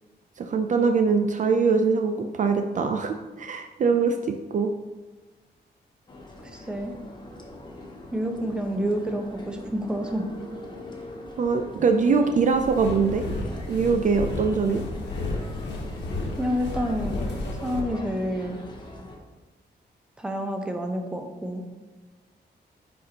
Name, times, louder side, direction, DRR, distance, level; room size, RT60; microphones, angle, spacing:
voice 1, 0.4-4.7 11.4-13.3 13.7-14.8, right 5 dB, 45° right, 6 dB, 0.4 m, -23 dB
sound 1, 6.1-19.2, left 1 dB, 25° left, 0.8 m, -42 dB
voice 2, 6.5-6.9 8.1-10.2 16.4-17.2 17.6-18.6 20.2-21.6, equal, 5° right, 3 dB, 0.6 m, -28 dB
sound 2, 12.5-17.8, left 2 dB, 85° left, 1.2 m, -32 dB
9.9 x 4.3 x 2.8 m, 1.2 s
wide cardioid pair, 170°, 18 cm